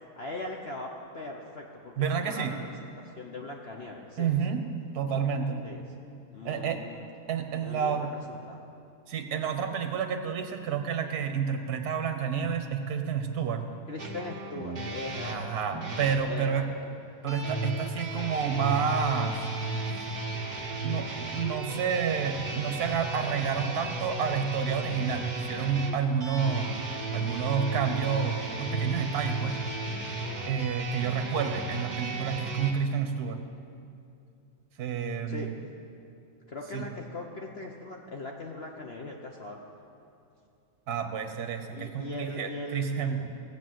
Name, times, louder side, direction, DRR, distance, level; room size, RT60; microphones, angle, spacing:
voice 1, 0.2-4.3 5.6-5.8 6.3-7.0 7.6-8.6 13.9-15.8 16.2-16.9 35.3-35.5 36.5-39.6 41.7-43.2, left 2 dB, 45° left, 0 dB, 1.0 m, -40 dB
voice 2, 2.0-2.5 4.2-4.6 4.9-5.6 6.4-6.8 7.3-8.1 9.1-13.6 15.2-16.7 17.2-19.5 20.8-26.8 27.1-29.6 30.5-33.4 34.8-35.6 36.7-36.9 40.9-43.2, right 7 dB, 65° right, 6 dB, 1.5 m, -29 dB
sound 1, 14.0-16.2 17.3-32.7, right 2 dB, 30° right, 1.3 m, -34 dB
17.5 x 7.5 x 7.7 m, 2.5 s
omnidirectional pair, 1.8 m